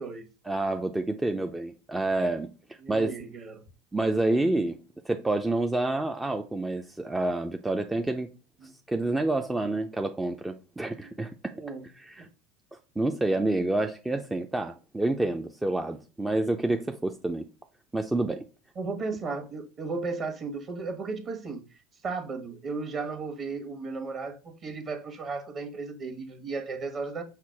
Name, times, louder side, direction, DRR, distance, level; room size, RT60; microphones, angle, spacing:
voice 1, 0.5-2.5 2.9-3.1 3.9-4.8 5.0-8.3 8.9-11.5 12.0-12.3 13.0-17.5 17.9-18.4, right 2 dB, 10° right, 0.4 m, -28 dB
voice 2, 2.8-3.6 8.6-8.7 11.0-11.1 11.5-11.8 12.2-12.3 18.8-21.6 22.0-27.2, right 4 dB, 40° right, 1.1 m, -35 dB
5.7 x 2.0 x 4.6 m
hypercardioid pair, 75°, 0 cm